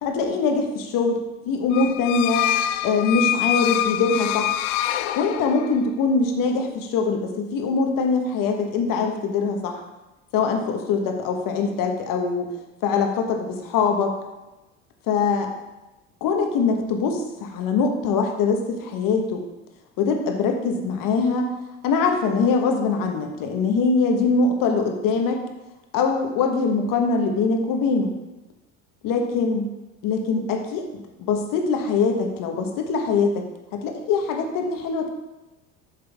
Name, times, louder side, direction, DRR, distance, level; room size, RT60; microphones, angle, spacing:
voice 1, 0.0-1.2 1.4-2.5 2.8-4.6 5.1-9.8 10.3-12.5 12.8-14.1 15.1-15.5 16.2-19.4 20.0-21.5 21.8-25.4 25.9-28.1 29.0-29.7 30.0-33.5 33.7-35.1, left 4 dB, 60° left, 4 dB, 1.4 m, -23 dB
sound 1, 1.7-5.9, left 12 dB, 75° left, 0.5 m, -25 dB
7.8 x 6.5 x 3.6 m, 1.0 s
hypercardioid pair, 85°, 37 cm